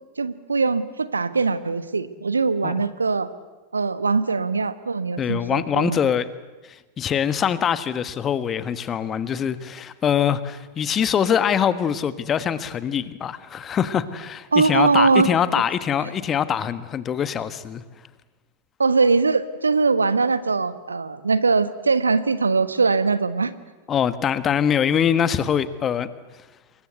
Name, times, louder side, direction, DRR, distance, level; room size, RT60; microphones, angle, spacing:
voice 1, 0.2-3.3 3.7-6.0 14.5-15.3 18.8-23.5, right 4 dB, 75° right, 1.3 m, -21 dB
voice 2, 5.2-6.3 6.6-17.8 23.9-26.1, left 8 dB, 25° left, 1.4 m, -23 dB
28.0 x 23.5 x 8.2 m
figure-of-eight pair, 90°, 0 cm